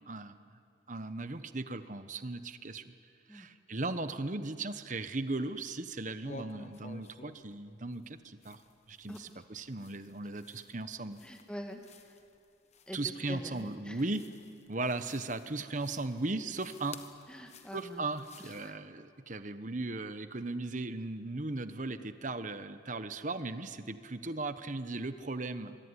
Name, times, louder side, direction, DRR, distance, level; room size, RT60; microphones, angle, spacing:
voice 1, 0.1-0.4 0.9-2.9 3.3-8.6 8.9-11.2 12.9-14.3 14.7-17.0 17.7-25.8, right 2 dB, 40° right, 10 dB, 1.1 m, -37 dB
sound 1, 4.8-5.6 5.9-18.8, left 4 dB, 35° left, 1.3 m, -54 dB
voice 2, 11.2-11.8 12.9-13.0 13.3-14.0 17.3-18.1 18.6-18.7, equal, 5° left, 3 dB, 1.9 m, -44 dB
25.5 x 23.0 x 9.9 m, 2.5 s
head